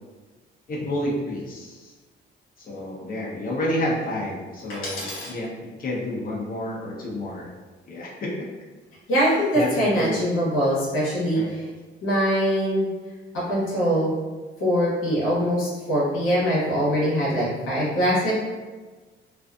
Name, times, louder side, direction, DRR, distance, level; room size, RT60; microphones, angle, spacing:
voice 1, 0.7-1.9 2.6-7.5 7.9-8.3 9.5-10.2 11.3-11.5, left 1 dB, 45° left, -4 dB, 0.8 m, -30 dB
voice 2, 4.7-5.3 9.1-11.4 12.0-12.9 13.5-14.1 14.6-18.3, equal, 80° left, -7 dB, 1.0 m, -23 dB
2.5 x 2.4 x 2.4 m, 1.3 s
cardioid pair, 90°, 20 cm